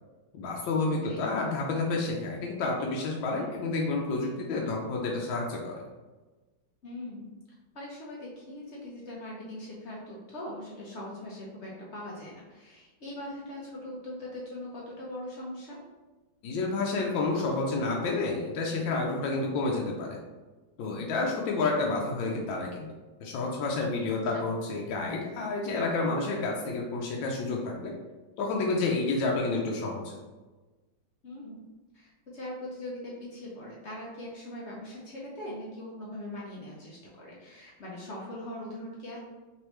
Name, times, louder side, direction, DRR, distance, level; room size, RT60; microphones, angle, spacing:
voice 1, 0.3-5.8 16.4-20.2 20.8-22.9 23.2-27.9 28.4-30.1, left 3 dB, 80° left, -1 dB, 1.3 m, -30 dB
voice 2, 0.9-1.2 6.8-7.3 7.7-15.8 24.3-24.4 31.2-31.6 31.9-39.2, left 1 dB, 60° left, -4 dB, 0.7 m, -41 dB
3.7 x 3.2 x 3.0 m, 1.2 s
omnidirectional pair, 2.1 m